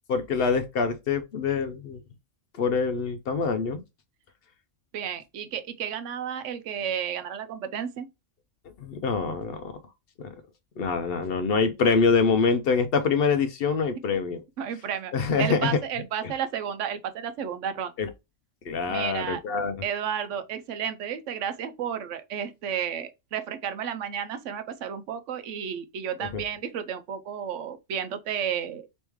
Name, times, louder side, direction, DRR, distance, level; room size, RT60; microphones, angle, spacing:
voice 1, 0.1-2.0 2.6-3.8 8.8-9.7 10.2-10.3 10.8-14.4 15.1-15.8 16.2-16.3 18.0-18.1 18.7-19.8 26.2-26.4, left 5 dB, 60° left, 0.7 m, -25 dB
voice 2, 4.9-8.1 14.6-15.1 15.4-17.9 18.9-19.4 19.8-28.9, right 8 dB, 80° right, 0.9 m, -32 dB
3.1 x 3.1 x 3.4 m
omnidirectional pair, 1.3 m